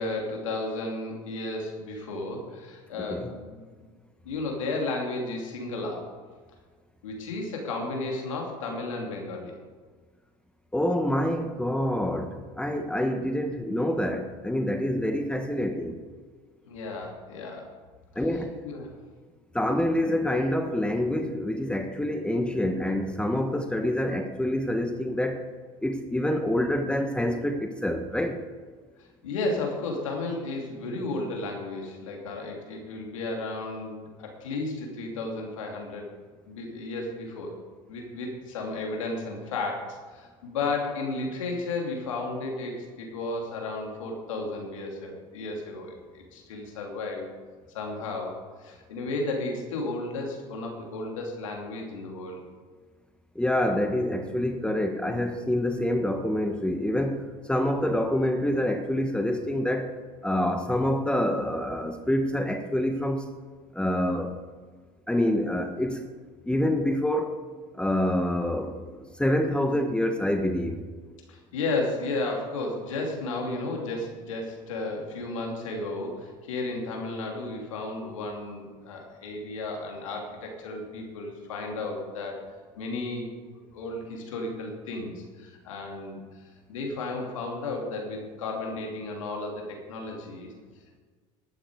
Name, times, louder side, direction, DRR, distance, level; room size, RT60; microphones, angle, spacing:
voice 1, 0.0-3.9 4.2-6.1 7.0-9.5 16.7-17.7 18.6-18.9 29.2-36.1 36.5-37.6 37.9-47.3 47.7-52.4 71.3-82.4 82.8-83.3 83.7-86.2 86.7-90.5, left 2 dB, 85° left, 0 dB, 3.0 m, -33 dB
voice 2, 3.0-3.3 10.7-16.0 18.1-18.6 19.5-25.5 25.8-28.4 53.3-59.9 60.2-63.3 63.7-64.3 65.1-66.0 66.4-67.4 67.7-70.8 78.0-78.1, left 1 dB, 5° left, 6 dB, 1.4 m, -27 dB
12.0 x 11.5 x 4.8 m, 1.5 s
hypercardioid pair, 85°, 16 cm